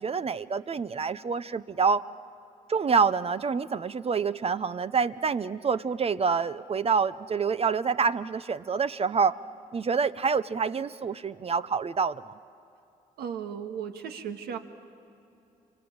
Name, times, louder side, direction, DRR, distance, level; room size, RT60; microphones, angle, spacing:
voice 1, 0.0-2.0 2.7-9.4 9.7-12.3, right 5 dB, 35° right, 13 dB, 0.7 m, -27 dB
voice 2, 13.2-14.6, right 8 dB, 80° right, 6 dB, 1.7 m, -35 dB
27.5 x 24.0 x 8.8 m, 2.8 s
supercardioid pair, 60°, 16 cm